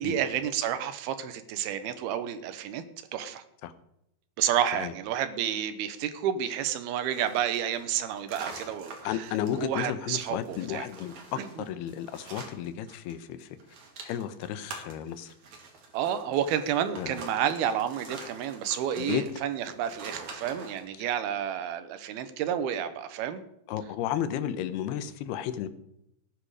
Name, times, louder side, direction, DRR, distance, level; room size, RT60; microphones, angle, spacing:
voice 1, 0.0-2.8 3.1-3.4 4.4-10.9 11.4-11.7 15.9-23.4, right 9 dB, 80° right, 11 dB, 2.9 m, -30 dB
sound 1, 7.0-13.1 13.4-20.9, right 4 dB, 50° right, 3.6 m, -46 dB
voice 2, 9.0-13.5 14.0-15.3 17.0-17.2 19.0-19.2 23.7-25.7, left 10 dB, 80° left, 12 dB, 2.9 m, -33 dB
18.0 x 10.0 x 4.9 m, 0.80 s
omnidirectional pair, 4.5 m